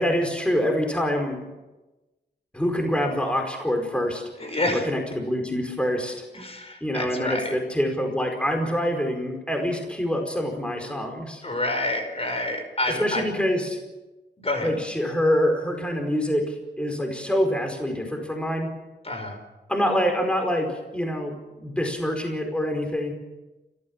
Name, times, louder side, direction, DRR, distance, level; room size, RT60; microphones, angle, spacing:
voice 1, 0.0-1.4 2.5-4.2 4.7-6.2 6.8-11.4 12.9-13.8 14.6-18.7 19.7-23.1, equal, 5° left, 3 dB, 4.9 m, -25 dB
voice 2, 4.4-4.9 6.3-7.6 11.4-13.2 14.4-14.7 19.0-19.4, left 1 dB, 35° left, 5 dB, 5.2 m, -28 dB
29.5 x 14.5 x 7.4 m, 1.1 s
cardioid pair, 65°, 18 cm